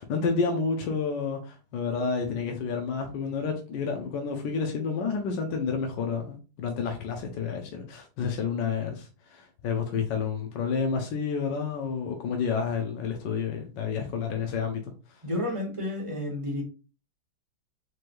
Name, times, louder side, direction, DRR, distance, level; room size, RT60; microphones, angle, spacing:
voice 1, 0.0-14.8 15.1-15.2, left 5 dB, 70° left, 1.2 m, -30 dB
voice 2, 15.2-16.6, left 1 dB, 30° right, 0.6 m, -31 dB
4.6 x 3.1 x 2.5 m
omnidirectional pair, 2.2 m